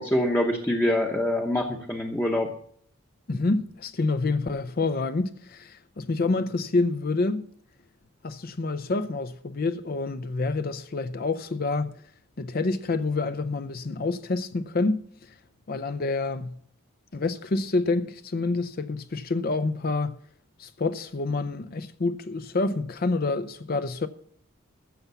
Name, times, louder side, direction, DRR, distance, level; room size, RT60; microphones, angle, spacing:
voice 1, 0.0-2.5, left 1 dB, 10° left, 0.8 m, -25 dB
voice 2, 3.3-7.4 8.2-11.9 12.4-15.4 15.7-16.6 17.1-20.2 20.6-24.1, left 3 dB, 45° left, 0.5 m, -27 dB
13.5 x 7.1 x 6.8 m
head